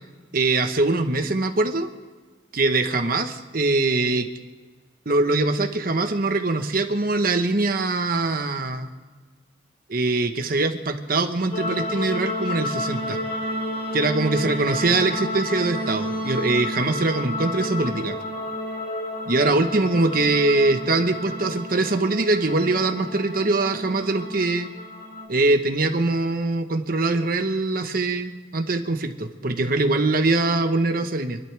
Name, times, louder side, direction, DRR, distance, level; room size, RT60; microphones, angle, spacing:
voice 1, 0.3-1.9 2.5-4.3 5.0-8.9 9.9-13.2 13.9-18.2 19.3-24.7 25.3-31.4, right 2 dB, 55° right, 6 dB, 1.2 m, -22 dB
sound 1, 11.5-25.3, left 1 dB, 50° left, 2.5 m, -31 dB
27.5 x 12.0 x 3.5 m, 1.4 s
head